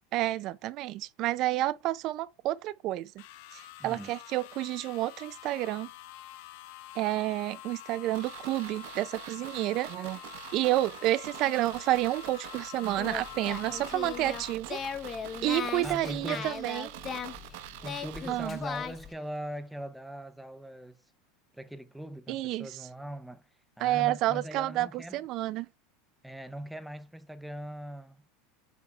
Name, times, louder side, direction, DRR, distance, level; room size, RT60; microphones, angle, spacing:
voice 1, 0.1-3.1 3.5-5.9 7.0-10.2 10.5-14.8 15.4-16.9 18.3-18.6 22.3-22.8 23.8-25.7, right 15 dB, 50° right, 0.4 m, -30 dB
sound 1, 3.2-14.5, left 13 dB, 70° left, 0.8 m, -46 dB
voice 2, 3.8-4.1 15.8-16.5 17.8-21.0 21.5-23.4 23.8-25.2 26.2-28.2, right 1 dB, ahead, 0.5 m, -40 dB
sound 2, 8.1-19.1 19.4-19.5, right 13 dB, 70° right, 1.0 m, -46 dB
Singing, 12.9-19.1, left 7 dB, 30° left, 0.8 m, -38 dB
7.2 x 3.5 x 4.3 m
supercardioid pair, 125°, 0 cm